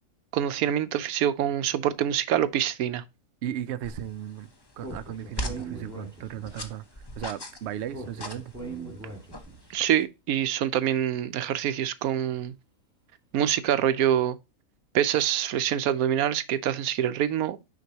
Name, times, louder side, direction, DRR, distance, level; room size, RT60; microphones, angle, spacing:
voice 1, 0.3-3.0 9.7-12.5 13.3-14.4 14.9-17.6, right 10 dB, 85° right, 1.1 m, -25 dB
voice 2, 3.4-6.8 7.2-8.5, right 11 dB, 60° right, 0.7 m, -36 dB
sound 1, 3.8-10.0, equal, 25° left, 0.6 m, -41 dB
Speech, 4.8-6.6 7.9-9.7, right 3 dB, 10° right, 1.6 m, -40 dB
6.4 x 5.3 x 2.8 m
omnidirectional pair, 1.5 m